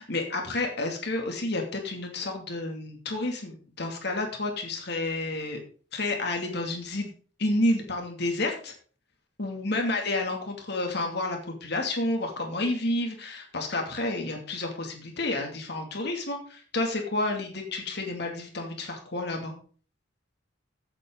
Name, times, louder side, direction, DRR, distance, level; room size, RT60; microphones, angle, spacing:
voice 1, 0.1-5.6 5.9-7.1 7.4-8.7 9.4-19.5, left 2 dB, 60° left, 2 dB, 2.5 m, -30 dB
16.0 x 8.4 x 3.9 m, 0.42 s
head